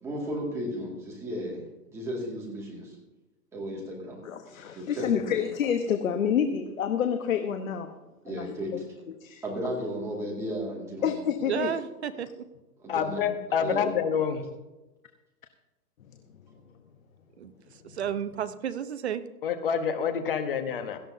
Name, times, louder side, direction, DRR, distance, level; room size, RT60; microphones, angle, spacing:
voice 1, 0.0-3.0 3.5-4.2 4.7-5.4 8.2-8.7 9.4-11.1 12.8-13.2 13.6-13.8, equal, 5° right, -4 dB, 2.1 m, -34 dB
voice 2, 4.2-7.9 8.3-8.5 8.7-8.8 9.2-9.4 11.0-11.8, left 8 dB, 60° left, 6 dB, 1.2 m, -28 dB
voice 3, 11.5-12.5 17.4-19.2, right 9 dB, 45° right, 11 dB, 0.8 m, -32 dB
voice 4, 12.9-14.4 19.4-21.0, left 7 dB, 35° left, 8 dB, 1.2 m, -27 dB
17.0 x 14.0 x 2.7 m, 1.1 s
hypercardioid pair, 170°, 46 cm